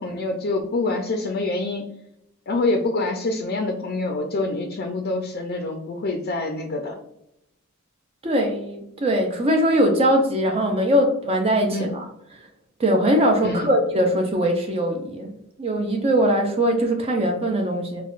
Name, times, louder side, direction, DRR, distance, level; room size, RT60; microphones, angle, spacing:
voice 1, 0.0-1.8 2.5-7.0 11.7-11.9 13.4-13.8, left 2 dB, 50° left, 3 dB, 0.5 m, -26 dB
voice 2, 8.2-12.1 12.8-18.0, equal, 30° right, 3 dB, 0.4 m, -21 dB
4.7 x 2.2 x 2.4 m, 0.79 s
head